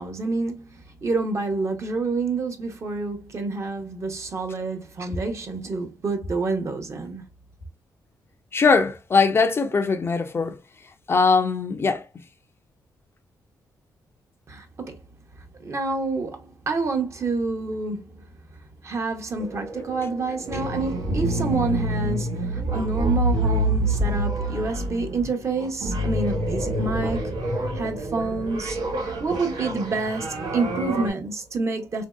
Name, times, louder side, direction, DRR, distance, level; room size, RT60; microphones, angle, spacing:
voice 1, 0.0-7.3 14.5-15.0 15.6-18.2 18.5-32.1, right 3 dB, 45° right, 0.8 m, -28 dB
voice 2, 8.5-10.6 11.1-12.0, left 4 dB, 35° left, 0.4 m, -21 dB
sound 1, 19.4-31.1, right 1 dB, 85° right, 1.0 m, -27 dB
3.0 x 2.6 x 2.2 m
cardioid pair, 95°, 7 cm